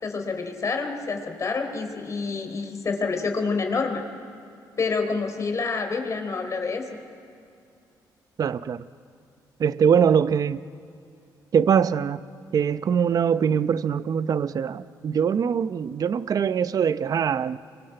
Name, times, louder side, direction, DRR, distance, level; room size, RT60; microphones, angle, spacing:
voice 1, 0.0-4.0 4.8-6.9, left 4 dB, 40° left, 4 dB, 3.8 m, -28 dB
voice 2, 8.4-8.9 9.6-10.6 11.5-12.2 12.5-17.6, right 7 dB, 55° right, 14 dB, 0.7 m, -22 dB
27.5 x 24.5 x 7.8 m, 2.5 s
cardioid pair, 90°, 8 cm